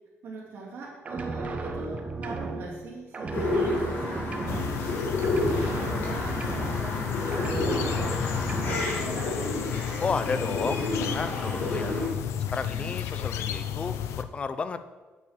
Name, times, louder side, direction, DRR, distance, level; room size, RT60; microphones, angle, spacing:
voice 1, 0.2-4.8 5.5-9.6 11.7-12.0 12.7-12.9, right 2 dB, 50° right, -5 dB, 3.2 m, -41 dB
sound 1, 1.0-2.9 3.1-5.0 5.2-7.1 7.3-9.0, right 3 dB, 30° right, 0.9 m, -34 dB
sound 2, 3.3-12.0, left 2 dB, 45° left, 3.0 m, -30 dB
sound 3, 4.5-14.2, left 9 dB, 90° left, 0.7 m, -33 dB
voice 2, 10.0-11.9 12.5-14.8, left 4 dB, 25° left, 12 dB, 0.6 m, -32 dB
8.3 x 6.9 x 6.7 m, 1.3 s
cardioid pair, 155°, 5 cm